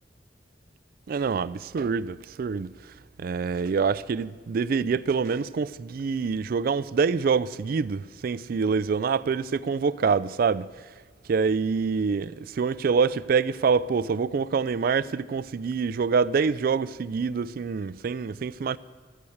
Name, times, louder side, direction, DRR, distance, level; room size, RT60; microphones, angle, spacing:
voice 1, 1.1-2.7 3.2-10.7 11.3-18.8, right 5 dB, 55° right, 0.3 m, -26 dB
12.0 x 8.7 x 7.9 m
head